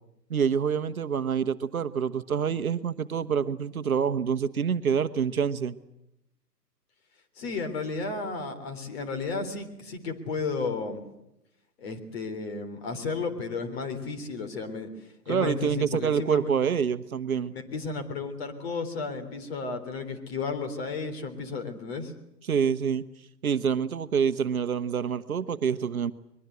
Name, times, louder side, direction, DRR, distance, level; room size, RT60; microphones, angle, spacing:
voice 1, 0.3-5.7 15.3-17.5 22.5-23.0 23.4-26.1, right 7 dB, 55° right, 11 dB, 1.1 m, -26 dB
voice 2, 7.4-11.0 11.8-16.5 17.5-22.1, left 4 dB, 35° left, 8 dB, 3.6 m, -33 dB
22.5 x 22.0 x 8.1 m, 0.83 s
figure-of-eight pair, 135°, 50 cm